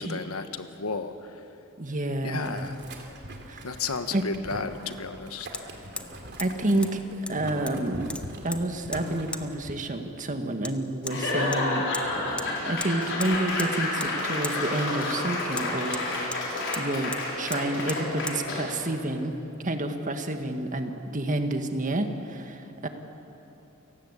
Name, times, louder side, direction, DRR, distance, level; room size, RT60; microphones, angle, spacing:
voice 1, 0.0-1.3 2.2-2.8 3.6-5.5, left 4 dB, 80° left, 10 dB, 1.2 m, -33 dB
voice 2, 1.8-2.7 3.5-3.6 4.1-4.2 6.4-7.0 7.3-8.2 8.4-11.8 12.7-17.1 17.4-19.3 19.6-22.9, right 1 dB, 35° right, 6 dB, 1.7 m, -29 dB
Boiling, 2.4-9.7, right 1 dB, 55° right, 3.1 m, -42 dB
Hammer, 3.6-3.7 5.5-5.6 6.0-6.1 6.4-6.5 6.8-6.9 7.3-7.8 8.1-8.6 8.9-9.0 9.3-9.4 10.6-10.7 11.1-11.2 11.5-12.1 12.4-12.5 12.8-12.9 13.2-13.7 14.0-14.1 14.4-14.6 15.5-16.4 16.7-16.9 17.1-17.2 17.5-17.6 17.9-18.0 18.3-18.4, left 2 dB, 5° left, 1.0 m, -36 dB
Laughter / Applause / Crowd, 11.0-18.8, left 2 dB, 60° left, 5.5 m, -30 dB
29.0 x 18.5 x 8.2 m, 3.0 s
head